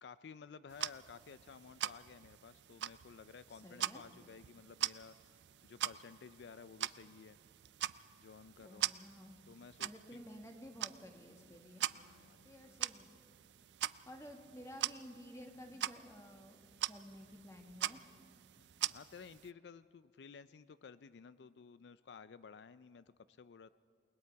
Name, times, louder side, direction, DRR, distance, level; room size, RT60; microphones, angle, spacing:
voice 1, 0.0-5.4 5.6-7.4 8.2-8.9 9.5-10.2 11.9-12.8 15.7-15.8 18.9-23.7, left 5 dB, 75° left, 15 dB, 0.4 m, -55 dB
sound 1, 0.7-19.5, right 12 dB, 80° right, 0.4 m, -43 dB
voice 2, 3.5-4.0 8.6-9.4 9.8-11.9 12.4-13.2 13.8-18.0, equal, 15° left, 3 dB, 1.7 m, -53 dB
28.5 x 20.0 x 4.7 m, 2.3 s
head